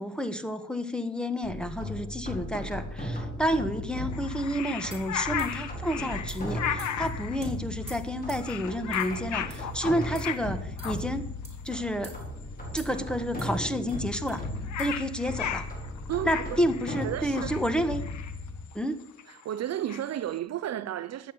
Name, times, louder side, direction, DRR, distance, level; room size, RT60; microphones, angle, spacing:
voice 1, 0.0-11.3 11.6-12.2 12.7-14.4 14.8-15.7 16.2-18.0 18.7-19.0, equal, 5° left, 1.4 m, -30 dB
sound 1, 1.4-18.6, left 1 dB, 30° left, 5.0 m, -37 dB
sound 2, 4.1-7.4 7.8-8.1 8.4-10.5 10.8-11.0 11.6-11.7 11.9-12.1 12.4-12.8 13.0-13.1 13.3-13.4 13.6-20.3, left 9 dB, 70° left, 1.1 m, -35 dB
sound 3, 4.9-5.7 6.3-6.5 6.8-7.1 7.4-7.5 7.9-8.5 8.9-9.2 9.5-9.8 10.1-10.4 10.8-11.0 11.4-11.7 12.0-12.2 12.8-13.1 13.4-14.4 14.8-14.9, right 3 dB, 20° right, 4.7 m, -49 dB
voice 2, 16.1-16.6 17.0-17.5 19.3-21.3, right 11 dB, 60° right, 0.6 m, -33 dB
12.5 x 8.8 x 6.8 m
cardioid pair, 90°, 30 cm